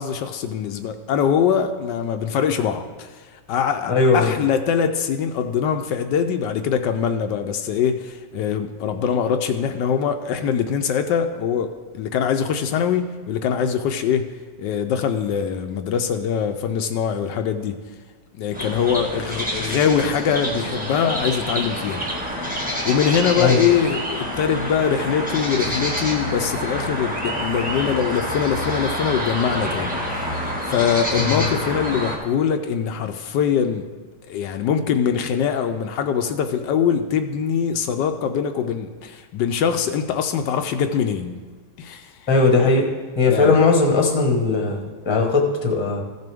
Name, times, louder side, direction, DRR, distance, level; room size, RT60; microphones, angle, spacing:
voice 1, 0.0-3.1 3.5-14.3 14.6-17.8 18.4-22.0 22.8-33.9 34.3-41.4 41.8-42.1 43.3-43.6, left 7 dB, 80° left, 6 dB, 1.2 m, -23 dB
voice 2, 3.9-4.3 23.4-23.6 31.2-31.4 42.3-42.9 43.2-46.0, left 3 dB, 20° left, 1 dB, 1.1 m, -18 dB
sound 1, 18.5-32.2, equal, 5° right, 1.3 m, -27 dB
15.5 x 6.7 x 3.5 m, 1.4 s
omnidirectional pair, 2.0 m